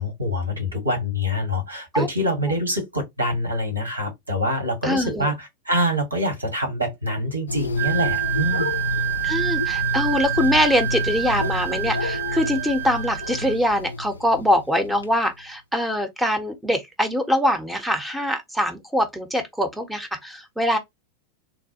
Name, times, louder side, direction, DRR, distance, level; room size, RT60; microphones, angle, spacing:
voice 1, 0.0-8.7, equal, 85° right, 1.3 m, -25 dB
voice 2, 4.8-5.3 9.2-20.8, equal, 5° right, 0.6 m, -23 dB
sound 1, 7.5-15.1, left 2 dB, 75° left, 0.4 m, -29 dB
Wind instrument woodwind instrument, 7.8-13.6, right 21 dB, 40° right, 0.4 m, -28 dB
3.3 x 2.2 x 2.7 m
figure-of-eight pair, 90°, 0 cm